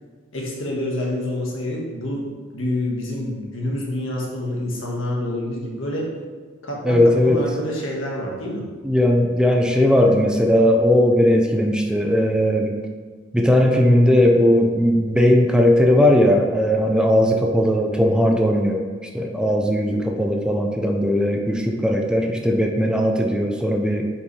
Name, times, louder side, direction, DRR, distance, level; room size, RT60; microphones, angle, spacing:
voice 1, 0.3-6.1 6.6-8.7, left 1 dB, 85° left, -2 dB, 1.6 m, -27 dB
voice 2, 6.8-7.4 8.8-12.8 13.3-18.8 19.1-24.1, left 1 dB, 5° right, 2 dB, 0.5 m, -18 dB
8.3 x 5.3 x 3.3 m, 1.5 s
head